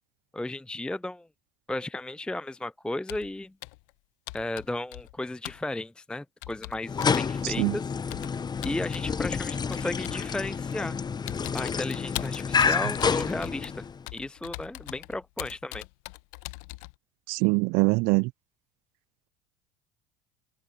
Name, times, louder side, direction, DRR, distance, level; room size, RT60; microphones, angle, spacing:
voice 1, 0.3-1.3 1.7-3.5 4.3-7.8 8.6-11.0 11.5-13.9 14.1-15.8, left 2 dB, 5° left, 0.5 m, -34 dB
Computer keyboard, 3.1-3.3 3.6-3.9 4.3-5.2 5.4-5.7 6.4-7.3 8.1-9.1 9.7-10.3 10.7-10.9 11.3-16.9, left 27 dB, 70° left, 1.1 m, -41 dB
sound 1, 6.8-14.0, left 6 dB, 25° left, 0.9 m, -29 dB
voice 2, 7.4-7.8 17.3-18.3, right 30 dB, 60° right, 0.4 m, -23 dB
hypercardioid pair, 70°, 17 cm